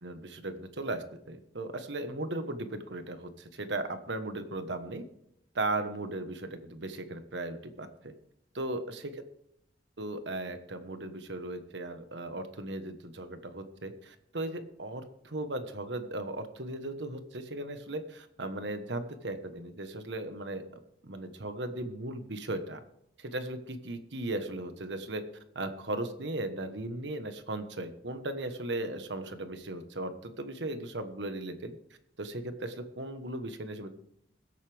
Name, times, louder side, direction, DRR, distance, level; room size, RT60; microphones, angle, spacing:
voice 1, 0.0-5.0 5.5-8.1 8.5-9.2 10.0-20.6 21.0-22.8 23.2-25.2 25.5-31.7 32.2-33.9, right 2 dB, 80° right, 8 dB, 1.4 m, -37 dB
21.0 x 8.3 x 3.5 m, 0.75 s
head